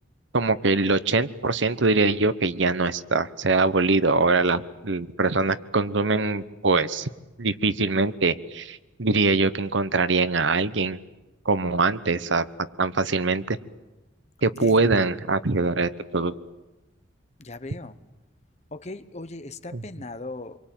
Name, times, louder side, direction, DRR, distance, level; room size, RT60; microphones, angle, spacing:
voice 1, 0.3-7.1 7.4-11.0 11.4-12.4 12.8-13.6 14.4-16.3, right 3 dB, 70° right, 14 dB, 1.0 m, -23 dB
voice 2, 14.4-14.9 17.4-18.0 18.7-20.6, left 2 dB, 35° left, 12 dB, 1.1 m, -38 dB
26.5 x 23.5 x 9.1 m, 1.1 s
head